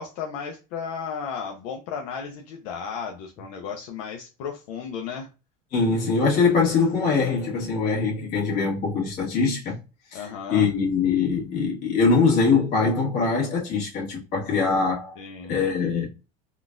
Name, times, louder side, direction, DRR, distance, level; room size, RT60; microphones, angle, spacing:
voice 1, 0.0-5.3 10.1-10.7 15.2-15.5, left 6 dB, 70° left, 0.6 m, -34 dB
voice 2, 5.7-9.8 10.1-15.2 15.5-16.1, left 4 dB, 45° left, 1.5 m, -23 dB
3.7 x 2.4 x 2.4 m
cardioid pair, 155°, 19 cm